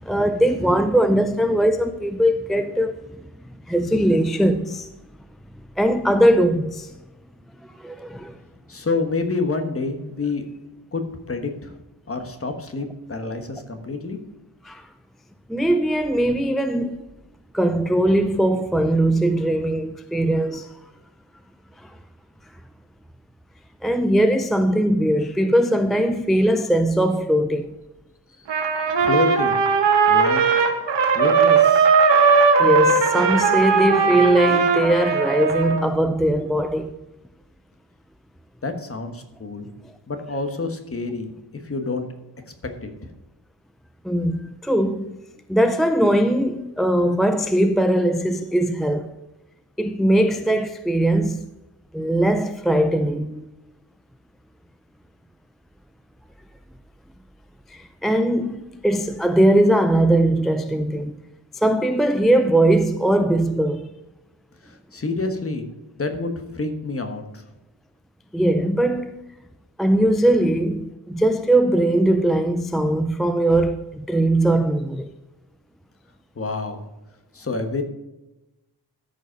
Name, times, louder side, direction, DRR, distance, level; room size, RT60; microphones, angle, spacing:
voice 1, 0.0-3.0 3.7-4.9 5.8-6.9 7.8-8.4 14.6-14.9 15.5-17.0 17.5-20.7 21.8-21.9 23.8-27.7 32.6-36.9 44.0-45.1 45.5-49.1 49.8-51.5 51.9-53.4 57.7-61.1 61.5-63.9 68.3-69.2 69.8-75.1, right 1 dB, ahead, 0.3 m, -20 dB
voice 2, 8.7-10.4 10.9-11.7 12.1-14.2 29.0-29.6 30.1-30.4 31.1-32.0 38.6-39.7 40.1-41.3 41.6-42.1 42.8-42.9 64.6-65.6 66.0-67.4 76.4-76.8 77.3-77.8, left 3 dB, 30° left, 1.3 m, -28 dB
Trumpet, 28.5-35.8, right 5 dB, 80° right, 1.4 m, -18 dB
13.0 x 5.2 x 5.2 m
wide cardioid pair, 160°, 42 cm